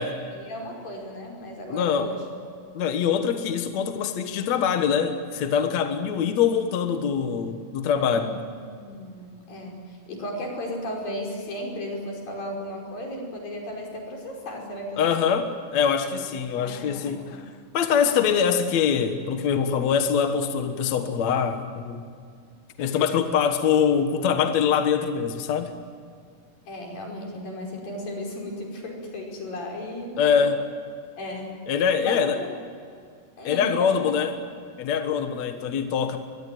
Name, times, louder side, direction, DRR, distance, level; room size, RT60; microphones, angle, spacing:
voice 1, 0.3-2.2 8.0-8.4 8.8-15.1 16.6-17.5 26.7-30.5 31.2-31.6 32.0-32.5 33.4-34.1, left 1 dB, 80° left, 0 dB, 7.2 m, -35 dB
voice 2, 1.7-2.1 2.7-8.4 15.0-17.4 17.7-22.0 22.8-25.7 30.2-30.6 31.7-32.4 33.4-34.3 34.8-36.2, left 7 dB, 60° left, 7 dB, 2.4 m, -24 dB
23.5 x 23.5 x 9.3 m, 2.2 s
omnidirectional pair, 4.0 m